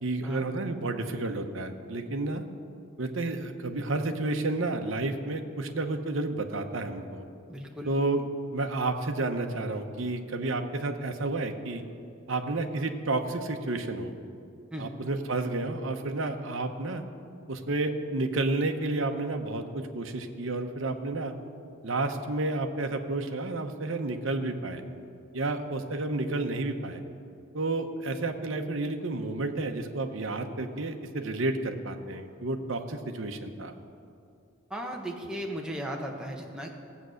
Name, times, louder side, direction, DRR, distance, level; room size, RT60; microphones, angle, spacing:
voice 1, 0.0-2.4 3.0-7.2 7.9-11.8 12.3-14.1 14.8-17.0 17.5-21.3 21.8-24.8 25.3-27.0 27.5-33.7, right 2 dB, 65° right, 5 dB, 0.9 m, -31 dB
voice 2, 7.5-7.9 14.7-14.9 34.7-36.7, equal, 5° right, 0 dB, 1.2 m, -36 dB
16.0 x 8.2 x 6.4 m, 2.4 s
head